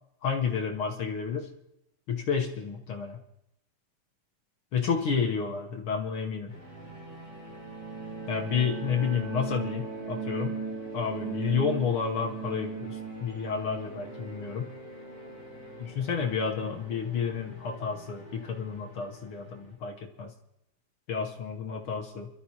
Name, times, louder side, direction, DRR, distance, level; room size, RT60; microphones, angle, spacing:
voice 1, 0.2-1.5 2.1-3.2 4.7-6.5 8.3-10.6 10.9-14.7 15.8-20.3 21.1-22.3, left 6 dB, 60° left, 1 dB, 1.4 m, -30 dB
sound 1, 6.5-19.7, equal, 20° right, 7.3 m, -47 dB
sound 2, 7.3-15.8, right 5 dB, 70° right, 2.9 m, -38 dB
28.5 x 12.5 x 2.9 m, 0.84 s
omnidirectional pair, 3.5 m